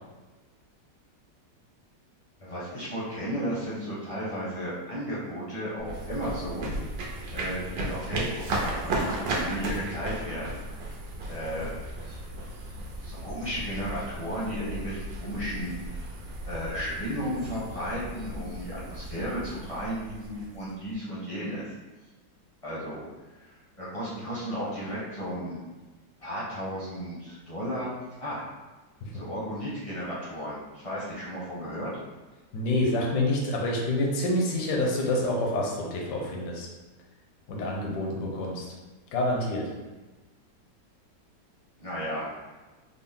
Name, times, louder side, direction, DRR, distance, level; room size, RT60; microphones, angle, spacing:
voice 1, 2.4-6.7 7.3-10.6 11.2-11.7 12.0-12.5 13.0-16.0 16.5-21.7 22.6-23.1 23.4-25.6 26.2-27.9 28.2-28.4 29.1-31.9 41.8-42.3, equal, 30° left, -8 dB, 0.6 m, -34 dB
sound 1, 5.8-20.9, right 2 dB, 90° right, 1.3 m, -35 dB
voice 2, 32.5-36.7 37.5-38.6 39.1-39.7, left 1 dB, 75° left, -1 dB, 1.3 m, -27 dB
4.2 x 2.0 x 3.5 m, 1.2 s
omnidirectional pair, 1.9 m